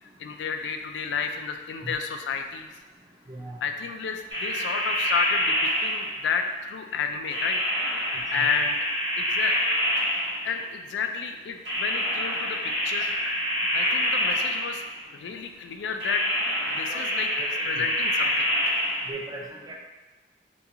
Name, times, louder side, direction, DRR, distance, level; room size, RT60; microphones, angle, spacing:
voice 1, 0.0-2.7 3.6-7.6 8.1-8.8 9.2-9.6 10.4-14.8 15.1-16.2 16.8-17.3 17.7-18.5, left 6 dB, 80° left, 5 dB, 0.3 m, -31 dB
voice 2, 3.3-3.6 8.4-8.5 16.9-17.0 17.4-17.9 19.1-19.7, right 2 dB, 20° right, -1 dB, 0.4 m, -38 dB
sound 1, 4.3-6.4 7.3-10.7 11.6-15.0 16.0-19.1, equal, 90° right, 1.3 m, -26 dB
2.9 x 2.3 x 3.6 m, 1.2 s
head